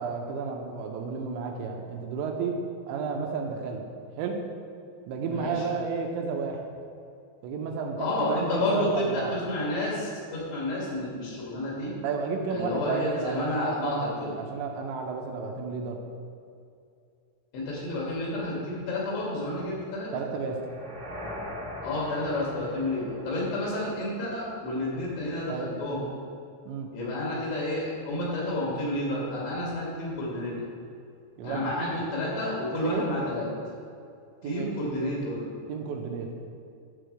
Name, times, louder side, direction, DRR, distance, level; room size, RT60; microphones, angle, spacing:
voice 1, 0.0-2.6 2.9-3.8 4.2-4.4 5.1-6.6 7.4-9.4 12.0-16.0 20.1-20.6 25.5-25.7 26.7-26.9 31.4-31.9 32.7-33.1 34.4-34.8 35.7-36.3, right 5 dB, 85° right, 2 dB, 3.0 m, -32 dB
voice 2, 5.3-5.7 8.0-11.9 12.5-14.3 17.5-20.1 21.8-26.1 26.9-30.6 31.4-33.5 34.4-35.5, left 1 dB, 85° left, -5 dB, 4.7 m, -30 dB
sound 1, 20.5-24.6, left 1 dB, 45° right, 1.4 m, -41 dB
11.5 x 7.6 x 3.3 m, 2.5 s
omnidirectional pair, 5.4 m